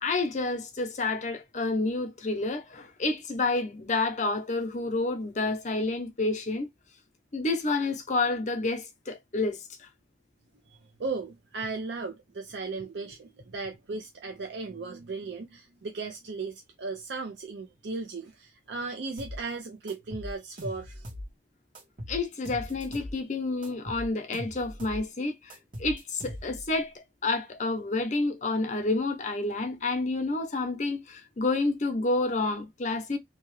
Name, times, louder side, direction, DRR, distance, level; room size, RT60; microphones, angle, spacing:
voice 1, 0.0-6.7 7.3-9.9 22.1-33.2, left 3 dB, 40° left, 0.6 m, -29 dB
voice 2, 11.0-21.1, right 3 dB, 75° right, 0.5 m, -36 dB
sound 1, 19.2-19.4 19.9-21.3 21.7-23.2 23.6-25.1 25.5-26.7, equal, 45° right, 1.2 m, -40 dB
2.7 x 2.3 x 3.0 m
head